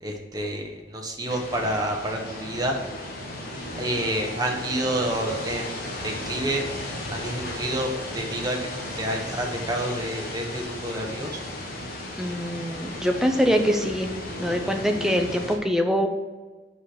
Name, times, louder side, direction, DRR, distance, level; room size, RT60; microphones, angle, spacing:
voice 1, 0.0-2.8 3.8-6.6 7.1-8.6 9.0-11.4, right 1 dB, 20° right, 1 dB, 1.0 m, -29 dB
sound 1, 1.3-15.6, left 1 dB, 50° left, 1.4 m, -35 dB
voice 2, 12.2-14.1 14.4-16.1, equal, ahead, 4 dB, 0.6 m, -23 dB
5.5 x 4.9 x 6.0 m, 1.3 s
head